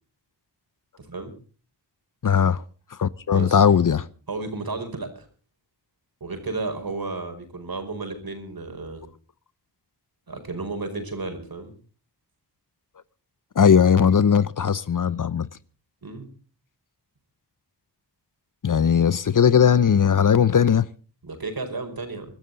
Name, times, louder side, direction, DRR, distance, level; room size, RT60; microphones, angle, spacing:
voice 1, 1.0-1.3 3.3-3.6 4.3-5.3 6.2-9.0 10.3-11.7 16.0-16.3 21.2-22.3, right 3 dB, 55° right, 5.0 m, -33 dB
voice 2, 2.2-2.6 2.9-4.1 13.6-15.5 18.6-20.9, left 7 dB, 50° left, 0.7 m, -18 dB
24.5 x 13.0 x 4.0 m
wide cardioid pair, 115°, 41 cm